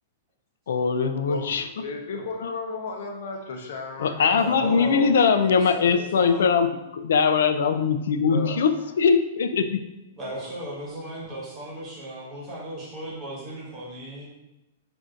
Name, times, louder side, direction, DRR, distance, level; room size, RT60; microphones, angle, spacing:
voice 1, 0.7-1.7 4.0-8.7 9.0-9.8, left 6 dB, 80° left, 9 dB, 0.3 m, -21 dB
voice 2, 1.3-5.1 8.3-8.9 10.2-10.5 11.2-11.4, left 4 dB, 60° left, 2 dB, 0.7 m, -35 dB
voice 3, 4.4-6.5 10.2-14.3, right 1 dB, 20° right, -5 dB, 1.2 m, -36 dB
5.6 x 2.6 x 2.5 m, 0.98 s
supercardioid pair, 170°, 0 cm